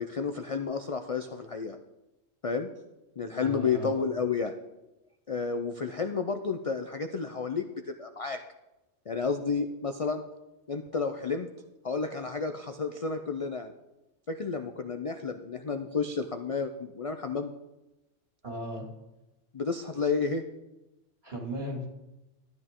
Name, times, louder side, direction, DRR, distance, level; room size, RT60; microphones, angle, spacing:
voice 1, 0.0-1.8 2.4-2.7 3.2-4.5 5.3-8.4 9.1-10.2 10.7-11.5 11.8-13.7 14.3-17.5 19.5-20.4, left 5 dB, 45° left, 6 dB, 0.5 m, -31 dB
voice 2, 3.4-4.1 18.4-18.9 21.2-21.9, equal, 55° right, -1 dB, 2.8 m, -36 dB
13.0 x 10.0 x 3.7 m, 0.98 s
omnidirectional pair, 1.2 m